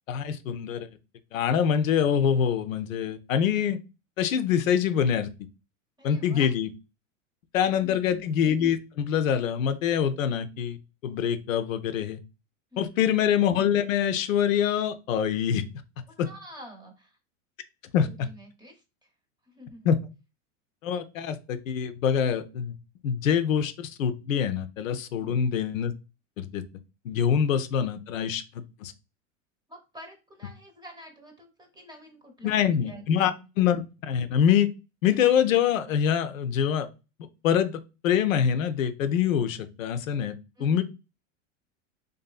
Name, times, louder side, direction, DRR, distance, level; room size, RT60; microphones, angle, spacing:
voice 1, 0.1-0.9 1.3-3.8 4.2-5.3 6.0-6.7 7.5-10.8 11.0-12.2 12.8-15.6 16.2-16.3 17.9-18.3 19.8-20.0 20.8-22.7 23.0-25.9 26.4-26.6 27.0-28.9 32.4-33.3 33.6-34.7 35.0-36.9 37.4-40.8, left 8 dB, 90° left, 10 dB, 0.5 m, -25 dB
voice 2, 6.0-6.5 7.7-8.3 12.7-12.9 16.1-17.1 18.0-18.8 19.5-19.9 25.1-25.4 29.7-32.5 32.9-33.2 40.6-40.8, equal, 10° right, 4 dB, 0.7 m, -47 dB
2.6 x 2.6 x 2.3 m, 0.29 s
hypercardioid pair, 105°, 39 cm